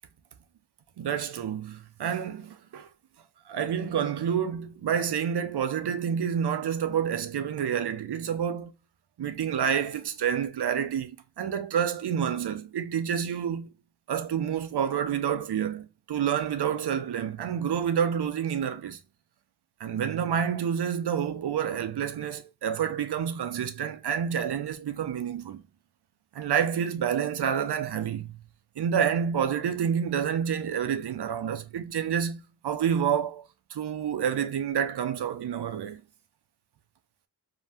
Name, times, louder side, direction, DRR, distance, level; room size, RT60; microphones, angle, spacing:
voice 1, 1.0-2.9 3.5-8.7 9.2-13.7 14.1-19.0 19.8-25.6 26.3-28.3 28.8-33.4 33.7-36.0, right 8 dB, 80° right, 0.5 m, -28 dB
2.7 x 2.1 x 3.3 m
wide cardioid pair, 70°, 39 cm